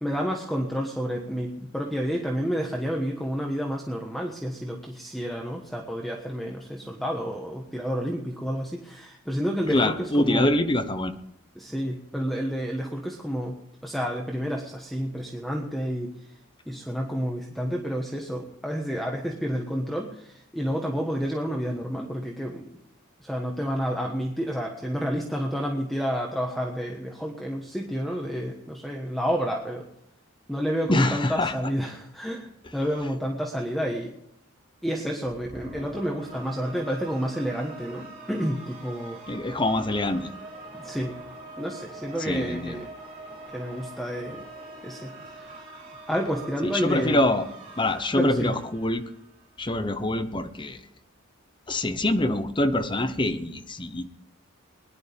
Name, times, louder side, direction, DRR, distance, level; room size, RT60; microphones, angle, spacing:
voice 1, 0.0-10.5 11.5-13.6 13.8-16.1 16.7-22.8 23.2-29.8 30.5-34.1 34.8-39.2 40.7-41.1 41.6-42.9 43.5-44.4 44.8-45.1 45.4-45.7 46.1-47.2 48.1-48.6, equal, ahead, 0 dB, 1.3 m, -30 dB
voice 2, 9.7-11.1 30.9-31.5 39.3-40.3 42.3-42.7 46.6-47.4 47.8-49.0 49.6-50.8 51.7-54.1, left 1 dB, 20° left, 8 dB, 1.0 m, -25 dB
sound 1, 35.2-49.6, right 2 dB, 35° right, 4.3 m, -44 dB
21.0 x 11.5 x 3.6 m, 0.77 s
head